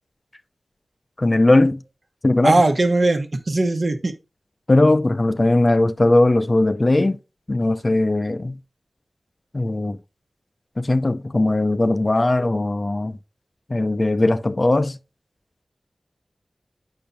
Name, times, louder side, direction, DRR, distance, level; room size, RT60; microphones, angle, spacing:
voice 1, 1.2-1.8 2.2-2.6 4.7-7.2 7.5-8.6 9.5-10.0 10.8-13.2 13.7-15.0, left 2 dB, 40° left, 0.5 m, -19 dB
voice 2, 2.4-4.1, right 2 dB, 60° right, 1.1 m, -19 dB
8.6 x 5.7 x 2.6 m
cardioid pair, 50°, 0 cm